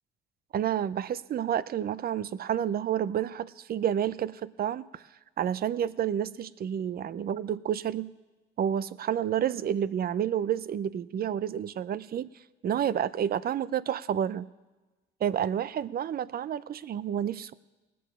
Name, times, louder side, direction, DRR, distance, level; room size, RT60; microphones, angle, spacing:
voice 1, 0.5-5.0 5.4-8.1 8.6-12.3 12.6-14.5 15.2-17.5, right 9 dB, 50° right, 18 dB, 0.5 m, -30 dB
19.5 x 7.0 x 6.1 m, 1.2 s
cardioid pair, 90°, 20 cm